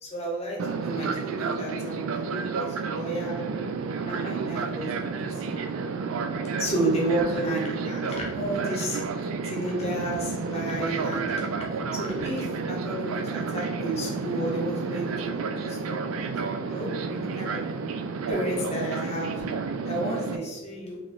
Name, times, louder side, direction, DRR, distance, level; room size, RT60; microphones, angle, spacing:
voice 1, 0.0-3.4 4.1-5.7 6.6-16.3 16.7-17.6 18.3-19.4 19.8-21.0, right 1 dB, 30° left, -2 dB, 0.9 m, -32 dB
Fixed-wing aircraft airplane, 0.6-20.4, right 4 dB, 80° right, 0.4 m, -31 dB
3.9 x 3.1 x 3.6 m, 1.3 s
head